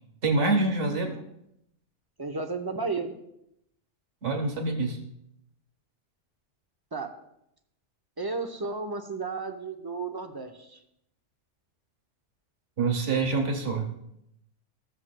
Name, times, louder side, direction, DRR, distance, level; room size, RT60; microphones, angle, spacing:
voice 1, 0.2-1.1 4.2-5.0 12.8-13.9, right 3 dB, 80° right, 4 dB, 1.6 m, -26 dB
voice 2, 2.2-3.2 6.9-7.1 8.2-10.8, right 4 dB, 25° right, 5 dB, 0.6 m, -33 dB
14.5 x 7.6 x 2.2 m, 0.78 s
omnidirectional pair, 1.2 m